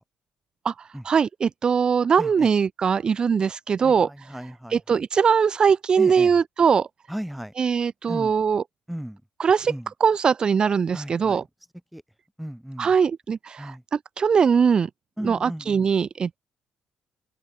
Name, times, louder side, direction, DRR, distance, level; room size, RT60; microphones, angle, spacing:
voice 1, 0.6-4.1 4.7-6.9 7.6-8.6 9.4-9.7 10.0-11.4 12.8-14.9 15.2-16.4, right 6 dB, 35° right, 0.4 m, -21 dB
voice 2, 2.2-2.5 3.8-5.0 6.0-6.3 7.1-7.5 8.1-8.3 8.9-9.2 9.7-9.9 10.9-11.4 11.9-12.0 12.4-12.9 13.6-13.8 15.2-15.9, equal, ahead, 5.0 m, -35 dB
cardioid pair, 120°, 3 cm